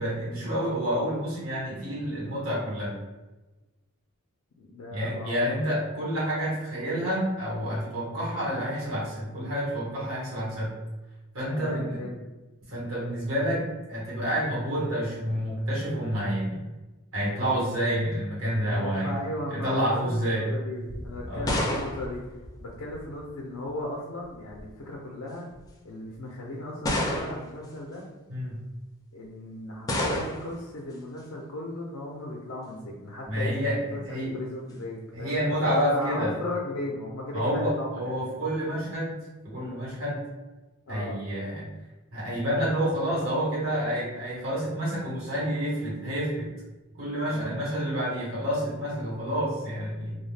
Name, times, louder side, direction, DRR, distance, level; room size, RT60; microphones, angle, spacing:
voice 1, 0.0-2.9 4.9-10.7 11.3-12.0 12.7-16.6 17.1-19.1 19.5-20.5 21.2-21.5 28.3-28.6 33.2-33.8 34.0-34.3 35.1-36.3 37.3-39.2 39.4-40.3 40.9-41.7 42.1-46.5 47.0-50.2, equal, 70° right, -6 dB, 1.1 m, -29 dB
voice 2, 4.6-5.5 11.5-12.3 12.9-13.1 18.6-22.2 22.6-25.5 25.8-28.1 29.1-38.1 40.9-41.2 47.2-47.7, left 1 dB, 85° left, -2 dB, 0.4 m, -36 dB
shotgun targetside, 20.9-23.2 24.2-24.7 25.5-25.6 26.8-27.7 29.9-30.6, left 1 dB, 15° left, 0.4 m, -30 dB
2.3 x 2.1 x 3.2 m, 1.1 s
head